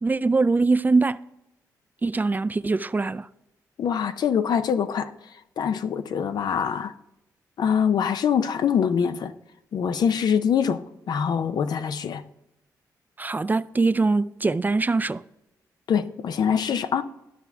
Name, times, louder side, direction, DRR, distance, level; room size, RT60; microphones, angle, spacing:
voice 1, 0.0-1.2 2.0-3.3 13.2-15.2, right 3 dB, 25° right, 0.3 m, -22 dB
voice 2, 3.8-5.1 5.6-6.9 7.6-9.3 9.7-12.2 15.9-17.0, left 7 dB, 70° left, 0.6 m, -24 dB
13.5 x 5.8 x 3.4 m
cardioid pair, 60°, 7 cm